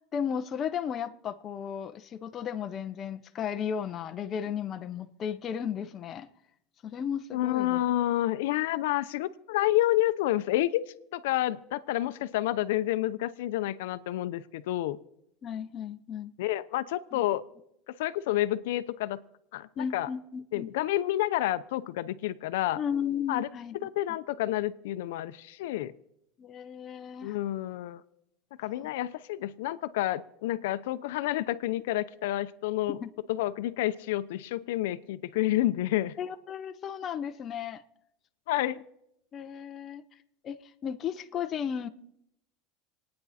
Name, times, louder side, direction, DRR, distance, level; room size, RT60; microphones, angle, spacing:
voice 1, 0.1-6.3 6.8-7.8 15.4-16.3 17.1-17.3 19.8-20.7 22.8-23.8 26.4-27.4 28.8-28.9 32.9-33.1 36.2-37.8 39.3-40.0 40.4-41.9, left 8 dB, 30° left, 8 dB, 0.8 m, -34 dB
voice 2, 7.3-10.8 11.1-15.0 16.4-17.4 18.0-19.2 19.5-20.1 20.5-22.8 23.3-23.5 23.8-25.9 27.2-28.0 28.6-33.0 33.3-36.1 38.5-38.8, left 14 dB, 85° left, 13 dB, 0.6 m, -29 dB
28.0 x 9.6 x 4.2 m, 0.78 s
supercardioid pair, 160°, 0 cm